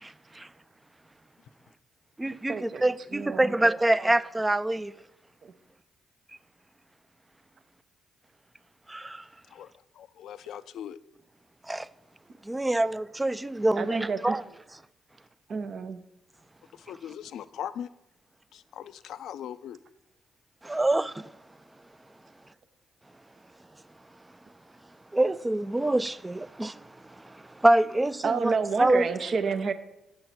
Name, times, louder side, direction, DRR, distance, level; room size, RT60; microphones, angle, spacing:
voice 1, 0.0-0.5 2.2-4.9 8.9-9.2 11.7-11.9 12.5-14.4 20.6-21.2 25.1-26.8 27.6-29.0, right 1 dB, 15° right, 0.4 m, -25 dB
voice 2, 2.5-2.8 3.1-4.1 5.4-5.5 13.7-14.4 15.5-16.0 28.2-29.7, right 5 dB, 55° right, 0.7 m, -30 dB
voice 3, 9.5-11.0 16.8-17.9 18.5-19.8, left 10 dB, 65° left, 0.4 m, -40 dB
8.4 x 6.3 x 5.8 m
hypercardioid pair, 45°, 0 cm